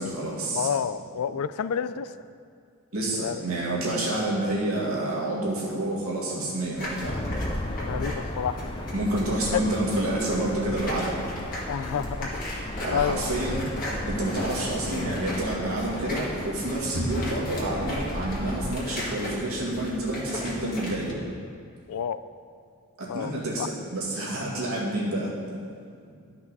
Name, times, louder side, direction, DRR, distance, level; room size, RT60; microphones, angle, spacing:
voice 1, 0.0-0.7 2.9-7.2 8.9-11.1 12.8-13.7 14.0-21.1 23.1-25.3, right 1 dB, 70° right, -5 dB, 2.1 m, -28 dB
voice 2, 0.5-2.1 3.1-3.4 7.8-8.6 11.7-12.3 12.9-13.3 21.9-22.2 23.1-23.3 23.6-23.7, left 7 dB, 80° left, 14 dB, 0.3 m, -29 dB
sound 1, 6.7-21.1, equal, 40° left, 1.9 m, -37 dB
sound 2, 7.0-18.8, left 1 dB, 20° left, 0.5 m, -35 dB
sound 3, 13.5-14.8 16.3-17.5 17.8-18.4 18.9-19.2 19.6-19.9 20.4-20.7 21.0-21.4, equal, 60° left, 1.4 m, -37 dB
13.0 x 5.6 x 4.0 m, 2.3 s
head